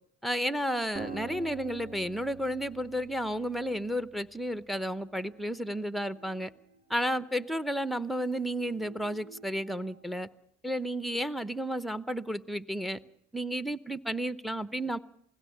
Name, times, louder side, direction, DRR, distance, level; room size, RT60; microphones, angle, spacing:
voice 1, 0.2-6.5 6.9-10.3 10.6-13.0 13.3-15.0, equal, ahead, 0.8 m, -32 dB
Acoustic guitar, 0.9-4.5, right 5 dB, 30° right, 1.5 m, -45 dB
sound 1, 4.8-10.0, right 5 dB, 75° right, 5.4 m, -56 dB
21.0 x 16.5 x 8.5 m
cardioid pair, 90°, 30 cm